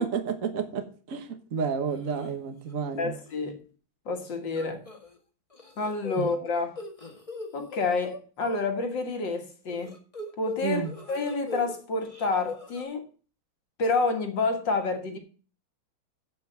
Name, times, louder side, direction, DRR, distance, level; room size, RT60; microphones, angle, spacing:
voice 1, 0.0-3.2 6.2-6.3 10.6-10.9, right 6 dB, 45° right, 1.5 m, -31 dB
sound 1, 1.9-2.3 2.7-3.0 3.3-3.4 4.5-5.2 5.5-8.6 9.7-11.7 12.0-12.8, left 3 dB, 15° left, 1.7 m, -40 dB
voice 2, 3.0-3.6 4.1-4.8 5.8-6.8 7.5-10.0 10.4-13.0 13.8-15.2, left 3 dB, 65° left, 2.3 m, -29 dB
7.5 x 7.5 x 7.9 m
omnidirectional pair, 2.2 m